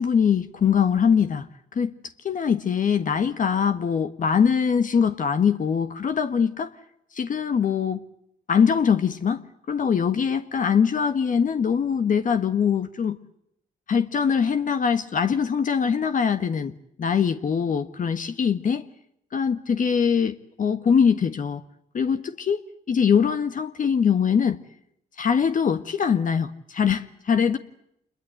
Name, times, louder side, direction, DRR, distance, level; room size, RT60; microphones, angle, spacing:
voice 1, 0.0-1.5 1.7-1.9 2.2-6.7 7.1-8.0 8.5-13.2 13.9-16.7 17.0-18.8 19.3-21.6 21.9-24.6 25.2-27.6, left 7 dB, 50° left, 9 dB, 1.5 m, -22 dB
27.0 x 22.0 x 7.9 m, 0.75 s
supercardioid pair, 65°, 17 cm